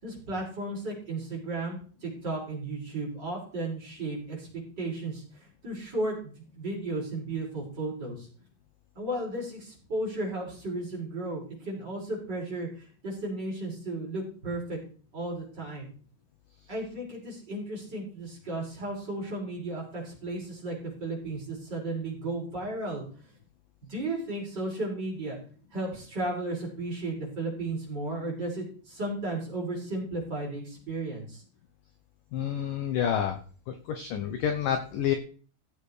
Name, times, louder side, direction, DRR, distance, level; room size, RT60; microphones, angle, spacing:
voice 1, 0.0-4.5 4.8-8.3 9.0-14.8 15.1-15.9 16.7-23.0 23.9-25.4 25.7-31.4, right 2 dB, 25° right, -4 dB, 5.9 m, -34 dB
voice 2, 32.3-33.4 33.7-35.1, left 9 dB, 70° left, 7 dB, 2.2 m, -29 dB
16.0 x 7.7 x 5.0 m, 0.41 s
omnidirectional pair, 4.9 m